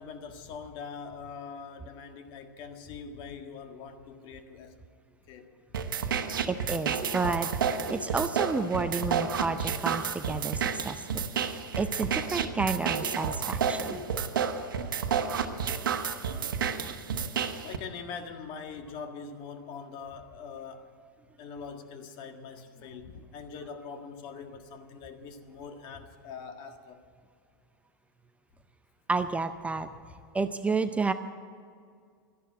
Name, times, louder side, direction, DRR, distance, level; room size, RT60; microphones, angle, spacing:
voice 1, 0.0-4.8 5.3-5.5 15.5-15.6 17.6-20.9 21.4-27.0, left 5 dB, 45° left, 1.7 m, -43 dB
sound 1, 5.7-17.8, right 7 dB, 80° right, 1.2 m, -30 dB
voice 2, 6.1-14.0 29.1-29.9 30.3-31.1, right 4 dB, 10° right, 0.6 m, -31 dB
13.0 x 11.0 x 9.5 m
hypercardioid pair, 105°, 11 cm